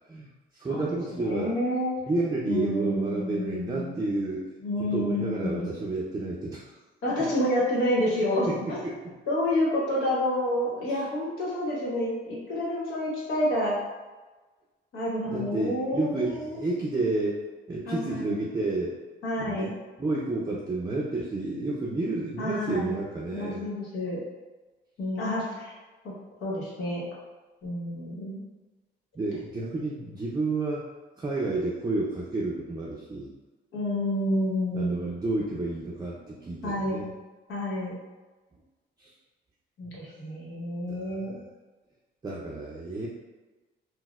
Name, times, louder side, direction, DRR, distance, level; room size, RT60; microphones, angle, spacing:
voice 1, 0.1-1.6 2.1-4.5 4.8-6.7 8.5-9.0 10.9-11.0 15.3-17.4 17.7-19.0 19.4-19.7 20.0-23.6 29.2-30.8 31.2-33.3 34.7-37.1 39.0-39.1 40.9-41.3 42.2-43.1, right 2 dB, 20° right, -4 dB, 0.5 m, -30 dB
voice 2, 1.1-1.9 2.5-3.9 4.6-5.7 7.0-8.8 9.3-13.8 14.9-16.6 17.9-18.4 19.2-19.7 22.4-23.0 23.3-24.2 25.0-25.8 26.0-26.1 26.4-27.0 27.6-28.4 33.7-35.1 36.6-37.0 37.5-37.9 39.8-41.3, left 1 dB, 80° left, -5 dB, 1.1 m, -29 dB
4.0 x 2.1 x 2.3 m, 1.2 s
cardioid pair, 90°, 20 cm